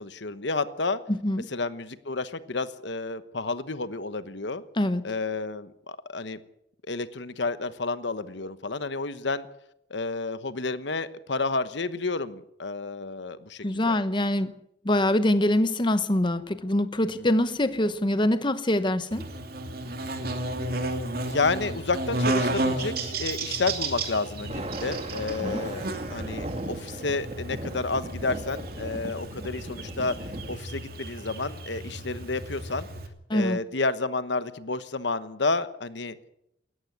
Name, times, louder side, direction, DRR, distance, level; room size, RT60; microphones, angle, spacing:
voice 1, 0.0-1.0 1.5-4.6 5.0-6.4 6.9-9.5 9.9-13.9 17.2-17.3 21.3-30.1 30.5-32.9 33.3-36.2, left 3 dB, 70° left, 13 dB, 1.2 m, -30 dB
voice 2, 1.1-1.5 4.8-5.0 13.6-14.5 14.8-19.3 25.4-25.6 33.3-33.6, left 1 dB, 25° left, 11 dB, 0.9 m, -24 dB
Buzz, 19.1-33.1, right 2 dB, 55° right, 2.7 m, -33 dB
Thunder, 24.3-30.6, right 1 dB, 35° right, 1.6 m, -37 dB
19.0 x 14.0 x 9.7 m, 0.78 s
head